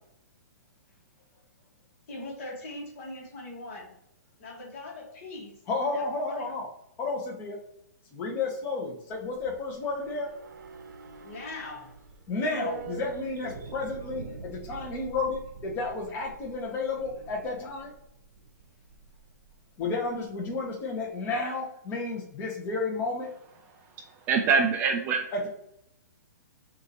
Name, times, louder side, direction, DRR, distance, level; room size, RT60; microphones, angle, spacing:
voice 1, 2.1-3.9 4.4-5.5 5.9-6.5 11.2-11.9, left 2 dB, 45° left, 0 dB, 1.5 m, -41 dB
voice 2, 5.7-6.7 7.0-7.6 8.1-10.3 12.3-17.9 19.8-23.3 25.3-25.5, left 3 dB, 20° left, 0 dB, 1.0 m, -32 dB
sound 1, 9.1-19.6 19.8-19.9, right 6 dB, 85° right, 0.8 m, -44 dB
voice 3, 24.3-25.2, right 5 dB, 20° right, 3 dB, 0.4 m, -23 dB
6.3 x 2.6 x 2.9 m, 0.75 s
hypercardioid pair, 155°, 10 cm